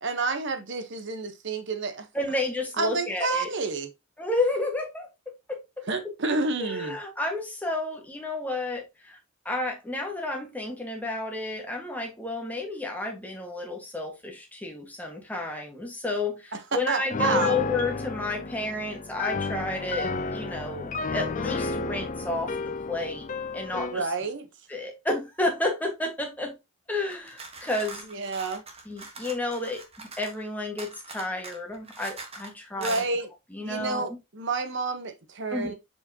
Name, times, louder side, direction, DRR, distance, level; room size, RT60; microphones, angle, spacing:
voice 1, 0.0-2.1 2.8-3.9 5.9-7.0 16.7-17.6 23.9-24.5 28.1-28.6 32.8-33.3 33.6-35.7, right 3 dB, 55° right, 1.1 m, -29 dB
voice 2, 2.1-3.5 4.2-5.1 5.5-5.6 6.6-9.2 9.4-23.3 23.5-24.1 24.7-26.6 26.9-28.0 28.8-33.0 33.5-34.1 35.5-35.7, left 2 dB, 5° left, 1.6 m, -31 dB
Piano, 17.1-24.0, left 4 dB, 35° left, 0.5 m, -32 dB
sound 1, 27.1-30.4 30.8-32.5 32.8-33.1, right 3 dB, 25° right, 1.3 m, -42 dB
7.0 x 4.9 x 2.8 m
head